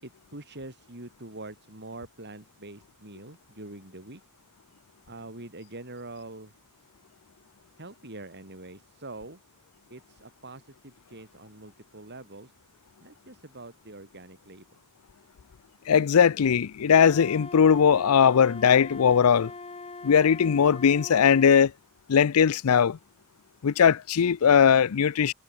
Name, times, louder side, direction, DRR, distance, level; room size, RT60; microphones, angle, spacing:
voice 1, 0.0-4.2 5.1-6.5 7.8-9.4 9.9-12.5 13.0-14.8, right 2 dB, 50° right, 7.2 m, -44 dB
voice 2, 15.9-19.5 20.0-21.7 22.1-23.0 23.6-25.3, left 7 dB, 75° left, 0.5 m, -20 dB
Wind instrument woodwind instrument, 16.9-21.5, left 3 dB, 25° left, 1.1 m, -41 dB
head